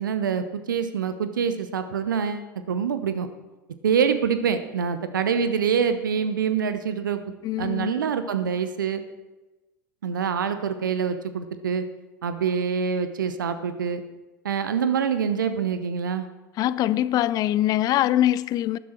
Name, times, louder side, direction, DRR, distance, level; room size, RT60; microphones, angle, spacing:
voice 1, 0.0-3.3 3.8-7.2 7.6-9.1 10.0-11.8 12.2-14.0 14.4-16.3, right 7 dB, 70° right, 0.8 m, -25 dB
voice 2, 7.4-7.9 16.6-18.8, left 13 dB, 35° left, 0.5 m, -23 dB
12.5 x 11.0 x 4.5 m
figure-of-eight pair, 80°, 11 cm